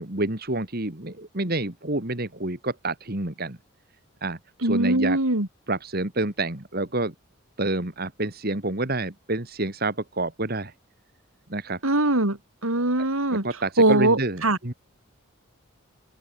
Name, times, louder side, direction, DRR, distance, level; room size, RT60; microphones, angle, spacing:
voice 1, 0.0-3.6 4.2-5.2 5.7-7.1 7.6-10.7 11.5-11.8 13.0-14.7, right 2 dB, 45° right, 2.6 m, -28 dB
voice 2, 4.6-5.5 11.8-12.4 12.6-13.4 13.8-14.6, right 2 dB, 80° right, 3.9 m, -21 dB
head